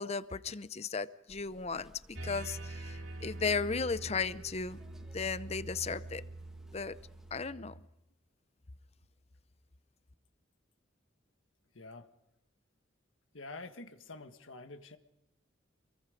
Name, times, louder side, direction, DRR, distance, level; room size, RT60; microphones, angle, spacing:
voice 1, 0.0-4.8 5.1-6.3 6.7-7.0 7.3-7.8, left 5 dB, 35° left, 15 dB, 0.7 m, -35 dB
sound 1, 1.3-7.4, equal, 5° right, 1.7 m, -59 dB
sound 2, 2.1-7.8, right 2 dB, 75° right, 2.5 m, -45 dB
voice 2, 11.7-12.1 13.3-15.0, left 3 dB, 80° left, 8 dB, 1.6 m, -47 dB
27.5 x 22.0 x 5.2 m, 0.88 s
head